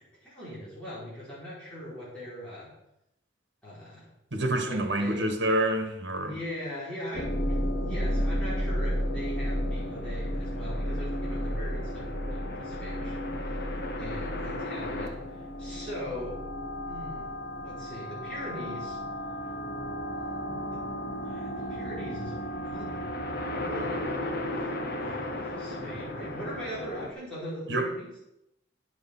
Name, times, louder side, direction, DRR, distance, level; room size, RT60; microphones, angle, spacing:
voice 1, 0.2-2.7 3.6-4.1 4.6-5.2 6.2-16.4 16.8-17.3 17.6-19.0 20.5-20.8 21.1-23.1 23.6-24.1 24.4-24.7 25.0-28.2, equal, 5° left, 4.9 m, -40 dB
voice 2, 4.3-6.3 27.7-27.9, right 1 dB, 70° right, 1.4 m, -27 dB
sound 1, 7.1-27.1, equal, 60° left, 1.3 m, -33 dB
10.5 x 6.4 x 5.8 m
head